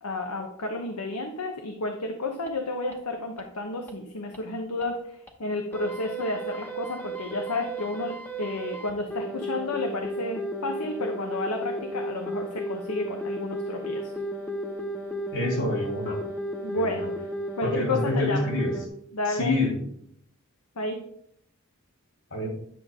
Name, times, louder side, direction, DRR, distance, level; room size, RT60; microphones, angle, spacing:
voice 1, 0.0-14.1 16.6-17.0 17.6-18.4 19.1-19.6 20.8-21.0, left 2 dB, 90° left, 3 dB, 1.0 m, -31 dB
sound 1, 2.5-2.6 2.9-3.0 3.4-3.5 3.9-4.0 4.3-4.4 4.8-4.9 5.3-5.4 5.7-18.9, right 1 dB, 10° left, 0.9 m, -34 dB
voice 2, 15.3-16.2 16.8-17.1 17.6-18.7 19.3-19.7 22.3-22.5, left 2 dB, 60° left, -1 dB, 3.1 m, -27 dB
10.5 x 6.6 x 3.7 m, 0.70 s
head